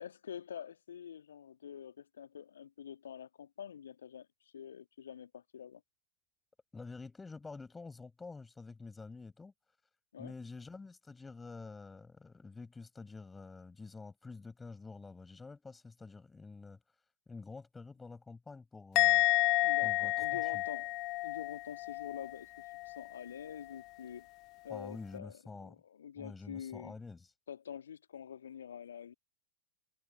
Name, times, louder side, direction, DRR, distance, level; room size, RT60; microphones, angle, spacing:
voice 1, 0.0-5.8 10.1-10.4 19.6-21.0 21.2-24.3 24.6-27.0 27.5-29.1, left 8 dB, 65° left, 1.9 m, -46 dB
voice 2, 6.7-9.5 10.2-16.8 17.3-19.2 19.8-20.6 24.7-25.8 26.2-27.3, left 4 dB, 10° left, 5.5 m, -48 dB
Musical instrument, 18.9-22.3 22.6-23.0, left 22 dB, 40° left, 0.3 m, -30 dB
figure-of-eight pair, 90°, 0 cm